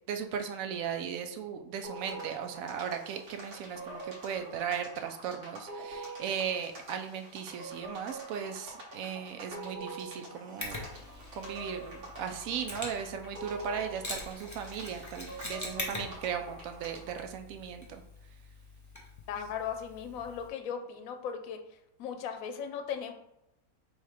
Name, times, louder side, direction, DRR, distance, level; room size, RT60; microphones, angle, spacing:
voice 1, 0.1-10.8 11.3-18.0, right 7 dB, 70° right, 7 dB, 0.9 m, -37 dB
sound 1, 1.8-17.2, right 2 dB, 90° right, 1.7 m, -45 dB
Mechanisms, 10.6-20.5, left 2 dB, 15° left, 0.6 m, -44 dB
voice 2, 19.3-21.6 22.0-23.1, left 7 dB, 70° left, 6 dB, 1.0 m, -37 dB
3.4 x 3.1 x 4.8 m, 0.84 s
omnidirectional pair, 1.6 m